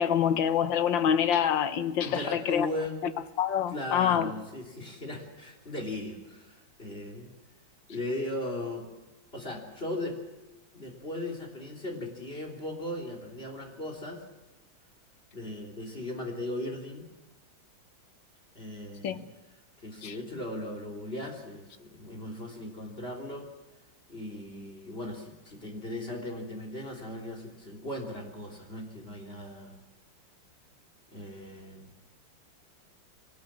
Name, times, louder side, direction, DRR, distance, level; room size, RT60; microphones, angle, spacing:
voice 1, 0.0-2.7 3.4-4.3 19.0-19.2 20.0-20.2, left 8 dB, 85° left, 11 dB, 1.8 m, -26 dB
voice 2, 2.0-3.0 3.7-7.3 7.9-8.9 9.3-10.2 10.7-14.2 15.3-17.1 18.5-19.2 19.8-23.5 24.1-29.7 31.1-31.9, left 1 dB, 30° left, 2 dB, 3.7 m, -37 dB
23.0 x 18.5 x 7.5 m, 1.1 s
omnidirectional pair, 2.0 m